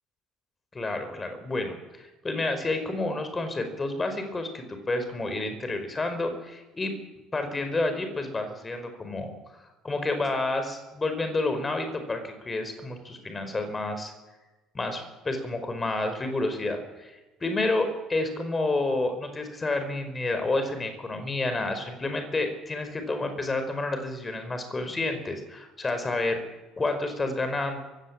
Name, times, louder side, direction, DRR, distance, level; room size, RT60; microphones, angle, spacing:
voice 1, 0.7-6.9 7.3-9.4 9.8-14.1 14.7-26.4 26.8-27.8, left 2 dB, 20° left, 7 dB, 5.1 m, -30 dB
23.5 x 16.5 x 7.5 m, 1.1 s
figure-of-eight pair, 55°, 0 cm